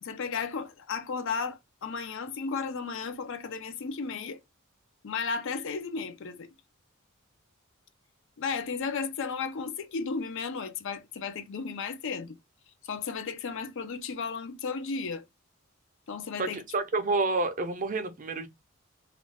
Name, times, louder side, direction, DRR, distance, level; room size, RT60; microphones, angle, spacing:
voice 1, 0.0-4.4 5.0-6.5 8.4-12.4 12.8-15.2 16.1-16.6, left 5 dB, 60° left, 0.5 m, -34 dB
voice 2, 16.4-18.5, right 3 dB, 40° right, 0.5 m, -29 dB
2.4 x 2.2 x 3.2 m
head